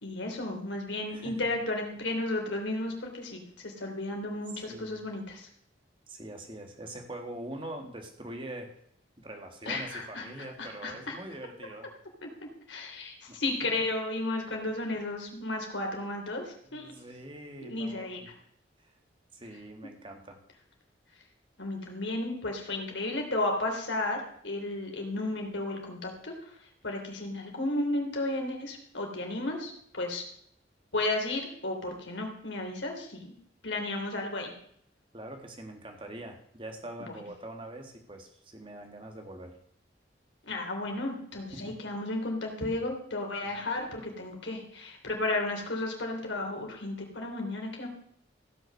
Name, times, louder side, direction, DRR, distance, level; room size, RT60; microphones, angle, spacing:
voice 1, 0.0-5.5 9.7-11.2 12.2-12.3 12.7-16.9 17.6-18.2 21.6-26.5 26.8-30.2 30.9-33.3 33.6-34.5 40.4-47.9, left 2 dB, 80° left, 2 dB, 3.2 m, -33 dB
voice 2, 1.1-1.5 4.5-5.0 6.1-8.8 9.2-12.0 13.3-13.4 16.7-18.3 18.8-19.0 19.3-20.4 35.1-39.6 41.5-41.7, right 1 dB, 30° right, 4 dB, 1.9 m, -43 dB
16.0 x 6.4 x 6.7 m, 0.68 s
head